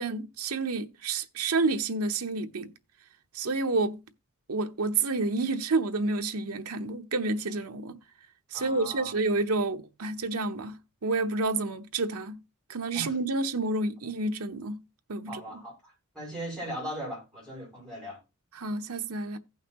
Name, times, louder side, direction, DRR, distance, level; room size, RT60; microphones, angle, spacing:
voice 1, 0.0-2.7 3.3-4.0 4.5-8.0 8.5-12.4 12.7-14.8 15.1-15.4 18.5-19.4, right 3 dB, 75° right, 0.9 m, -29 dB
voice 2, 8.5-9.1 12.9-13.1 15.3-18.2, right 1 dB, 5° left, 6.5 m, -39 dB
16.0 x 5.7 x 2.9 m
head